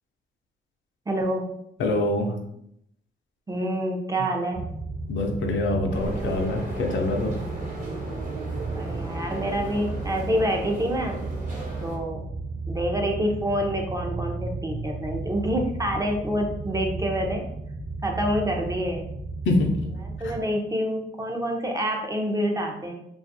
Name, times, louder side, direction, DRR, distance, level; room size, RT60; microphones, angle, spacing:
voice 1, 1.1-1.5 3.5-4.6 8.7-11.2 11.8-12.2 12.7-17.5 18.0-19.1 20.0-22.9, equal, 15° right, 1 dB, 0.5 m, -27 dB
voice 2, 1.8-2.3 5.1-7.3 19.5-19.7 20.2-20.4, left 2 dB, 70° left, 3 dB, 0.5 m, -25 dB
sound 1, 4.5-20.4, right 3 dB, 60° right, 1.0 m, -34 dB
sound 2, 5.9-12.0, right 2 dB, 40° right, 1.0 m, -36 dB
2.5 x 2.3 x 2.7 m, 0.76 s
cardioid pair, 70°, 20 cm